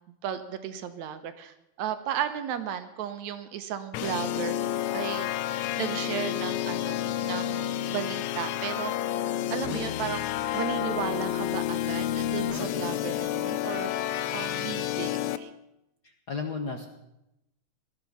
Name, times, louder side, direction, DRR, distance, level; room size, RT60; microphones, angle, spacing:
voice 1, 0.2-5.3 5.8-8.9 9.5-10.2 10.5-13.9 14.3-15.5, right 9 dB, 80° right, 10 dB, 2.4 m, -34 dB
sound 1, 3.9-15.4, left 12 dB, 80° left, 2.0 m, -30 dB
voice 2, 16.0-16.9, left 4 dB, 55° left, 4 dB, 1.2 m, -34 dB
19.0 x 13.0 x 5.6 m, 0.88 s
omnidirectional pair, 3.3 m